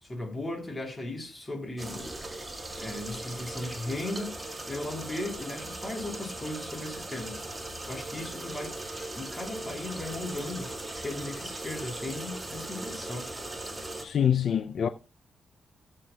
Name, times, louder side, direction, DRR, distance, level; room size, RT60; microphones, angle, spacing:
voice 1, 0.0-2.1 2.8-7.4 7.9-8.8 9.1-13.3, left 2 dB, 20° left, 3.8 m, -37 dB
sound 1, 1.8-14.0, right 2 dB, 15° right, 2.0 m, -39 dB
voice 2, 14.0-14.9, left 8 dB, 65° left, 0.5 m, -25 dB
17.5 x 7.6 x 2.3 m
cardioid pair, 115°, 0 cm